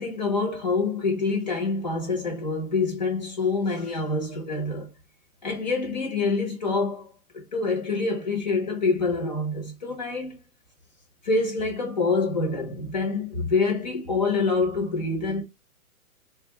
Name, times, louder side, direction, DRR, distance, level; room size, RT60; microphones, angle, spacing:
voice 1, 0.0-4.9 5.4-10.4 11.2-15.4, left 3 dB, 30° left, 0.8 m, -26 dB
3.9 x 2.3 x 2.9 m
hypercardioid pair, 170°, 43 cm